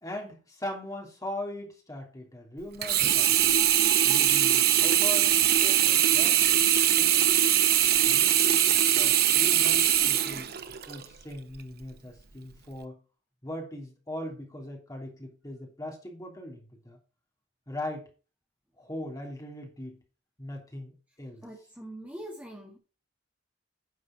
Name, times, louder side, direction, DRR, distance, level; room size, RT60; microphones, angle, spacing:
voice 1, 0.0-3.6 4.0-6.7 7.0-7.4 8.0-10.5 10.9-13.0 13.4-17.0 17.7-18.1 18.8-20.0 20.4-21.4, left 1 dB, 20° left, 3.0 m, -40 dB
Sink (filling or washing), 2.8-11.1 11.6-11.7, right 11 dB, 55° right, 0.8 m, -22 dB
voice 2, 21.4-22.8, right 1 dB, 10° right, 1.8 m, -43 dB
10.0 x 5.4 x 5.9 m
head